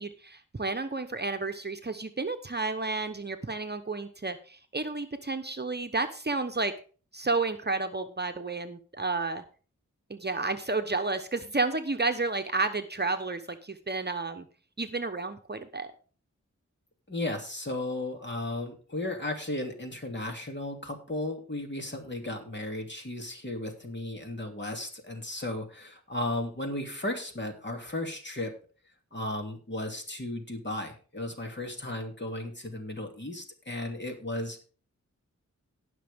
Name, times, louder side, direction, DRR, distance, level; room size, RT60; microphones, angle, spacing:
voice 1, 0.0-6.7 7.1-9.4 10.1-14.5 14.8-15.9, right 3 dB, 35° right, 7 dB, 1.0 m, -31 dB
voice 2, 17.1-28.5 29.1-34.6, left 1 dB, 40° left, 3 dB, 2.7 m, -35 dB
18.5 x 6.2 x 3.6 m, 0.38 s
wide cardioid pair, 65°, 30 cm